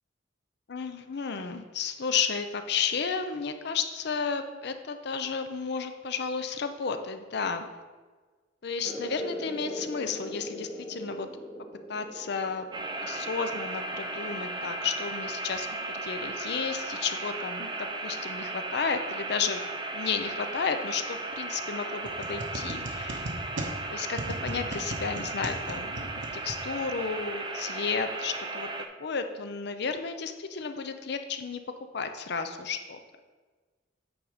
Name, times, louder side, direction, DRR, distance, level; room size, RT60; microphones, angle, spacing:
voice 1, 0.7-7.7 8.6-11.3 11.9-12.7 13.0-15.7 15.9-19.6 19.9-23.3 23.9-28.7 29.0-31.6 31.9-33.0, left 5 dB, 65° left, 8 dB, 0.6 m, -32 dB
sound 1, 8.8-16.0, equal, 5° right, 1.4 m, -42 dB
sound 2, 12.7-28.9, right 2 dB, 25° right, 0.5 m, -36 dB
sound 3, 22.0-27.1, right 1 dB, 85° right, 0.9 m, -38 dB
8.7 x 4.0 x 4.9 m, 1.4 s
head